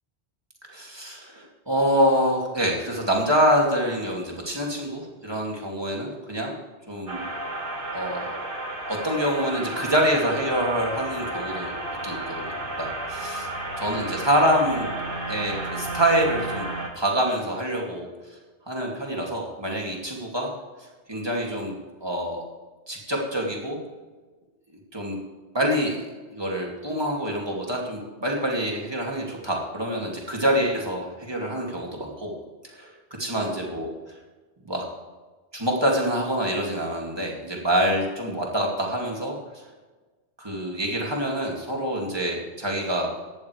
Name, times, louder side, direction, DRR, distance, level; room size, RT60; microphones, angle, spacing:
voice 1, 0.7-6.5 6.9-7.3 7.9-8.4 8.9-11.7 12.0-13.5 13.8-14.9 15.3-16.7 16.9-18.1 18.7-20.5 21.1-22.5 22.9-23.8 24.7-25.2 25.5-32.3 32.7-32.9 33.2-33.9 34.7-34.8 35.5-39.4 40.4-43.3, equal, 25° right, -1 dB, 2.6 m, -26 dB
sound 1, 7.1-16.9, right 2 dB, 55° right, 2.0 m, -32 dB
16.5 x 13.0 x 3.4 m, 1.3 s
omnidirectional pair, 1.1 m